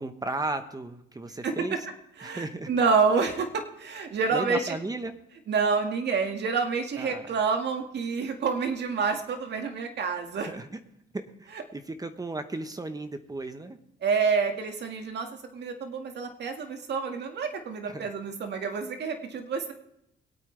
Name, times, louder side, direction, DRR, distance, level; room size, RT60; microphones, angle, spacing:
voice 1, 0.0-1.8 2.2-2.7 4.3-5.2 7.0-7.4 10.3-10.8 11.1-13.8 17.8-18.1, right 2 dB, 20° right, 9 dB, 1.0 m, -35 dB
voice 2, 2.2-4.8 5.5-10.5 14.0-15.3 15.5-19.7, right 5 dB, 60° right, 4 dB, 1.9 m, -28 dB
22.0 x 8.8 x 3.4 m, 0.80 s
cardioid pair, 90°, 20 cm